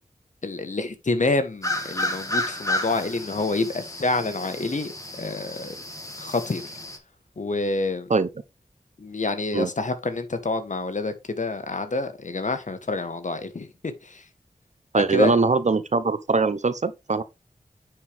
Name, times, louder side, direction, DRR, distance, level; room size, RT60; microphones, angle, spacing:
voice 1, 0.4-4.9 5.2-5.8 6.2-6.7 7.4-8.1 9.0-14.2 15.1-15.4, left 3 dB, 55° left, 1.5 m, -27 dB
sound 1, 1.6-7.0, left 1 dB, 20° left, 2.4 m, -32 dB
voice 2, 14.9-17.2, right 4 dB, 55° right, 0.8 m, -22 dB
9.5 x 4.6 x 3.6 m
cardioid pair, 40°, 15 cm